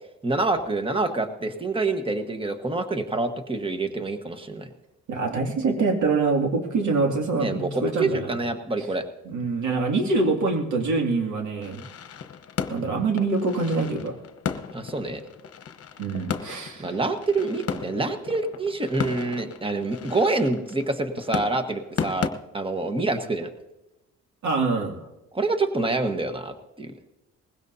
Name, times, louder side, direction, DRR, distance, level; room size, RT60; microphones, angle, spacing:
voice 1, 0.2-4.7 7.4-7.7 8.0-9.0 14.7-15.2 16.8-22.3 22.5-23.5 25.3-26.9, right 3 dB, 15° right, 7 dB, 1.3 m, -26 dB
voice 2, 5.1-8.3 9.2-11.8 12.7-14.2 16.0-16.9 24.4-25.0, right 3 dB, 70° right, 2 dB, 2.5 m, -25 dB
sound 1, 11.6-22.3, left 7 dB, 50° left, 1.0 m, -35 dB
20.5 x 16.0 x 2.7 m, 0.98 s
cardioid pair, 90°, 30 cm